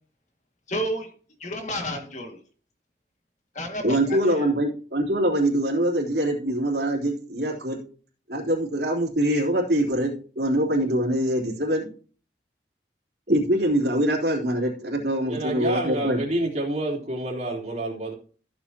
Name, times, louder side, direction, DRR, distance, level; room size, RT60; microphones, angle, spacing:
voice 1, 0.7-1.1 1.4-2.4 3.6-4.5, equal, 40° left, 3 dB, 2.1 m, -31 dB
voice 2, 3.8-7.8 8.3-11.9 13.3-16.2, right 1 dB, 60° right, -1 dB, 3.4 m, -24 dB
voice 3, 15.2-18.1, right 1 dB, 35° right, -2 dB, 3.4 m, -28 dB
14.5 x 7.7 x 2.9 m, 0.40 s
head